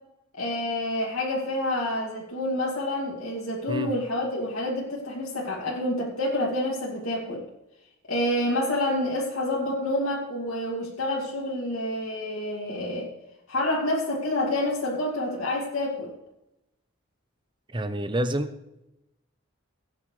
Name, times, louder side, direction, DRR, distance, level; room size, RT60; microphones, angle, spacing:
voice 1, 0.4-7.4 8.1-13.1 13.5-16.1, left 1 dB, 80° left, -4 dB, 2.5 m, -28 dB
voice 2, 17.7-18.5, right 1 dB, 20° right, 9 dB, 0.7 m, -28 dB
16.5 x 9.2 x 3.3 m, 0.88 s
head